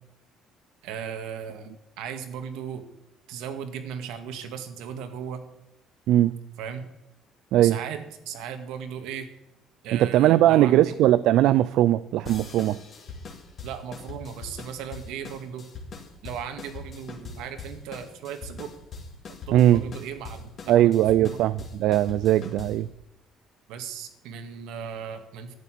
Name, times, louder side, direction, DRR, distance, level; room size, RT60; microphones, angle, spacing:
voice 1, 0.8-1.7 2.0-2.8 3.3-5.4 6.6-6.9 7.6-9.3 9.8-10.9 13.6-15.6 16.2-18.7 19.5-21.4 23.7-25.6, right 7 dB, 80° right, 8 dB, 2.0 m, -37 dB
voice 2, 9.9-12.8 19.5-19.8 20.7-22.9, right 13 dB, 60° right, 15 dB, 0.4 m, -20 dB
sound 1, 12.3-22.9, left 4 dB, 30° left, 2.2 m, -42 dB
12.5 x 8.4 x 9.8 m, 0.91 s
cardioid pair, 175°, 0 cm